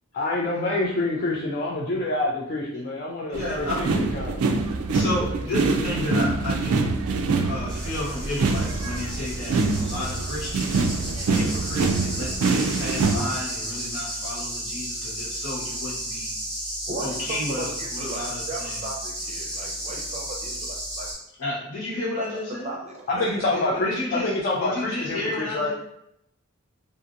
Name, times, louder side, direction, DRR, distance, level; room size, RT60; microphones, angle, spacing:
voice 1, 0.1-4.4 23.1-25.7, left 2 dB, 40° left, -4 dB, 0.4 m, -27 dB
voice 2, 3.3-3.9 4.9-6.9 7.5-10.9 11.2-16.3 17.0-18.8 21.4-22.7 23.5-24.3 24.6-25.7, left 1 dB, 75° left, -7 dB, 1.2 m, -32 dB
sound 1, 3.3-13.2, right 3 dB, 90° right, 0.4 m, -25 dB
sound 2, 7.7-21.1, right 1 dB, 5° left, 0.8 m, -33 dB
voice 3, 16.9-21.1 22.2-22.3 22.6-23.3, right 2 dB, 30° right, -1 dB, 0.5 m, -36 dB
2.8 x 2.6 x 2.4 m, 0.76 s
head